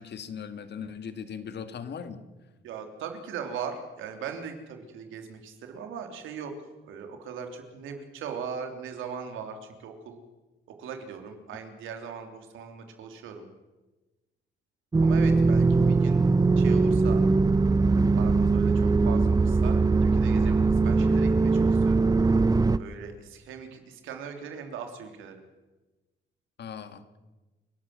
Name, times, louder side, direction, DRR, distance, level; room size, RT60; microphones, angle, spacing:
voice 1, 0.0-2.2 26.6-27.2, left 7 dB, 60° left, 10 dB, 2.1 m, -39 dB
voice 2, 2.6-6.5 6.8-10.2 10.8-13.5 15.0-16.2 16.6-17.2 17.8-22.0 22.8-25.4, right 6 dB, 90° right, 5 dB, 3.2 m, -39 dB
sound 1, 14.9-22.8, right 3 dB, 20° right, 0.6 m, -21 dB
30.0 x 12.0 x 7.8 m, 1.1 s
cardioid pair, 90°, 20 cm